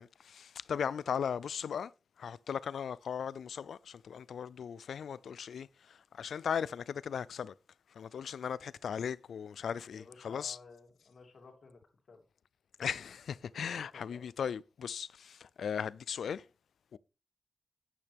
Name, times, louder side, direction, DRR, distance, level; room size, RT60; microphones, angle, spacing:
voice 1, 0.0-1.9 2.2-7.5 7.9-10.6 12.8-16.5 16.9-17.0, left 7 dB, 90° left, 0.4 m, -37 dB
voice 2, 9.8-11.8 12.1-12.2 13.8-14.2, left 4 dB, 65° left, 2.8 m, -54 dB
10.5 x 8.7 x 3.5 m
cardioid pair, 70°, 0 cm